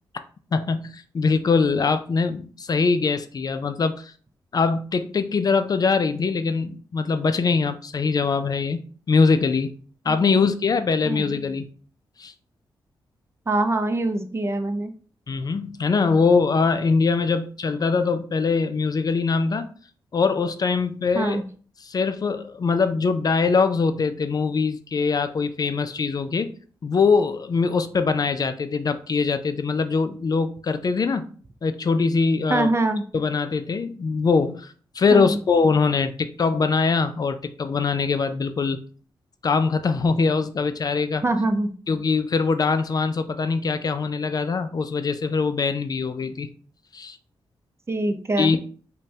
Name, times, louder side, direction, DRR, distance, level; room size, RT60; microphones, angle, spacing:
voice 1, 0.5-4.1 4.5-9.7 10.0-11.7 12.2-12.3 15.3-19.7 20.1-21.4 21.8-26.5 26.8-31.3 31.6-32.8 33.1-38.8 39.4-41.2 41.9-46.5 46.9-47.2 48.4-48.6, left 4 dB, 45° left, 0.4 m, -22 dB
voice 2, 10.1-10.4 11.1-11.4 13.5-14.9 21.1-21.4 32.5-33.0 35.1-35.4 41.2-41.7 47.9-48.5, right 2 dB, 30° right, 0.5 m, -24 dB
5.1 x 2.2 x 2.8 m
cardioid pair, 70°, 9 cm